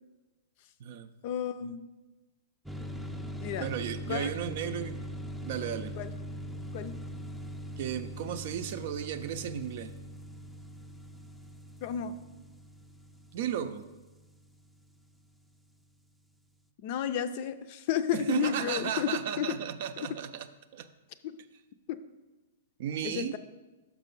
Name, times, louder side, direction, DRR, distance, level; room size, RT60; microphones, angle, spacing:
voice 1, 1.2-1.8 3.4-3.7 4.1-4.3 6.0-6.1 6.7-7.0 11.8-12.1 16.8-19.6 20.0-20.2 21.2-21.4 21.9-22.0 23.0-23.4, left 9 dB, 50° left, 11 dB, 0.4 m, -32 dB
sound 1, 2.7-15.1, equal, 5° right, 0.5 m, -42 dB
voice 2, 3.6-5.0 5.4-5.9 7.8-9.9 13.3-13.8 18.1-20.9 22.8-23.4, right 9 dB, 55° right, 11 dB, 0.4 m, -34 dB
5.8 x 5.4 x 5.3 m, 1.2 s
hypercardioid pair, 120°, 0 cm